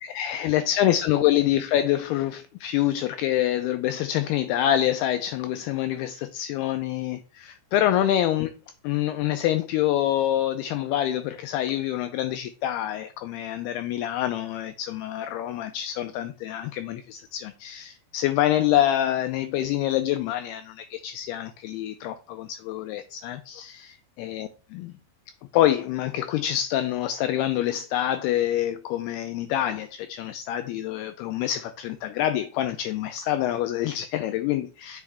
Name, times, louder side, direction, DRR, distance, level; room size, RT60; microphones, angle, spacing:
voice 1, 0.0-8.5 8.8-24.9 25.5-35.0, left 12 dB, 90° left, 2.2 m, -26 dB
8.4 x 5.3 x 3.4 m
omnidirectional pair, 5.1 m